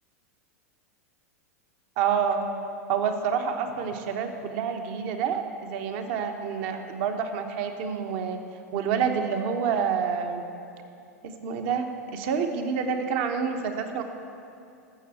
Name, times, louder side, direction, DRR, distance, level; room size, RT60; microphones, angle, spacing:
voice 1, 2.0-2.5 2.9-8.4 8.7-10.4 11.2-14.0, right 6 dB, 50° right, 6 dB, 1.1 m, -28 dB
13.5 x 6.9 x 7.9 m, 2.5 s
figure-of-eight pair, 90°, 9 cm